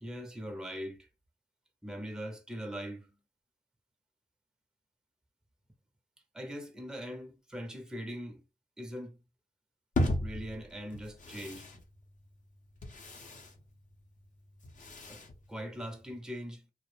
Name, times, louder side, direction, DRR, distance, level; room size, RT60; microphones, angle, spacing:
voice 1, 0.0-1.1 1.8-3.1 6.3-8.4 8.8-9.2 10.2-11.7 15.1-15.2 15.5-16.6, equal, 5° right, 0.6 m, -41 dB
sound 1, 9.9-16.2, left 1 dB, 55° left, 0.7 m, -37 dB
2.2 x 2.0 x 3.1 m
cardioid pair, 45°, 16 cm